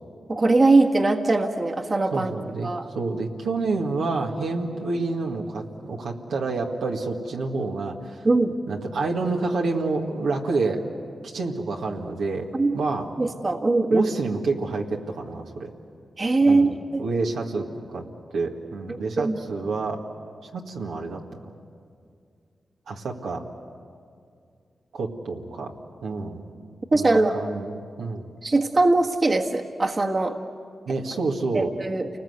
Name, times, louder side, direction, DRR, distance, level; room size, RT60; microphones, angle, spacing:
voice 1, 0.3-2.3 2.6-2.9 8.2-8.5 12.5-12.8 13.2-14.1 16.2-17.0 19.2-19.4 26.9-27.4 28.4-30.4 31.5-32.1, right 2 dB, 45° right, 2 dB, 1.6 m, -21 dB
voice 2, 2.1-2.7 2.9-8.2 8.7-10.8 11.3-12.5 12.7-13.1 13.9-15.7 16.5-16.7 17.0-18.0 18.3-20.0 20.5-21.5 22.9-23.4 24.9-25.7 26.0-26.5 26.9-28.3 30.9-31.7, right 3 dB, 90° right, 0 dB, 1.9 m, -28 dB
28.5 x 20.0 x 8.0 m, 2.3 s
cardioid pair, 55°, 0 cm